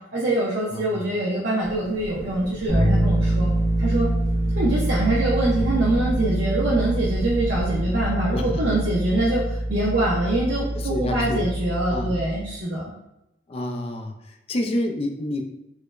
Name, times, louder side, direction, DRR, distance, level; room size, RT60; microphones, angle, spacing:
voice 1, 0.1-3.5 3.8-4.1 4.5-12.8, right 1 dB, 75° right, -6 dB, 0.6 m, -24 dB
voice 2, 0.7-1.0 5.5-5.7 8.3-8.6 10.7-11.5 11.9-12.1 13.5-15.4, left 1 dB, 30° left, 3 dB, 0.3 m, -29 dB
Engine, 1.6-8.0, left 1 dB, 80° left, 1.3 m, -39 dB
Bass guitar, 2.7-12.6, right 1 dB, 25° right, 0.6 m, -25 dB
4.7 x 2.0 x 2.4 m, 0.88 s
head